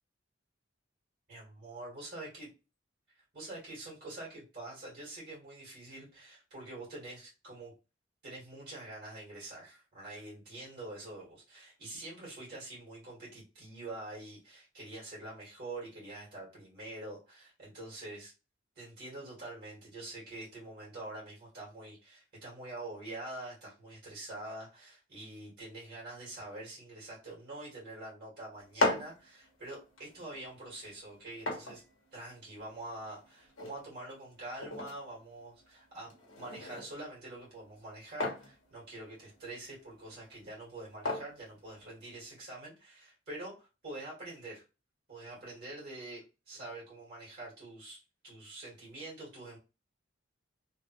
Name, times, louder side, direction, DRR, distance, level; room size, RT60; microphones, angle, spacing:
voice 1, 1.3-2.5 3.1-7.7 8.2-18.3 18.7-31.8 32.1-36.1 36.4-44.6 45.1-49.6, right 2 dB, 50° right, -6 dB, 1.7 m, -45 dB
sound 1, 28.5-42.4, left 2 dB, 85° left, 1.1 m, -40 dB
3.4 x 2.3 x 2.9 m, 0.31 s
head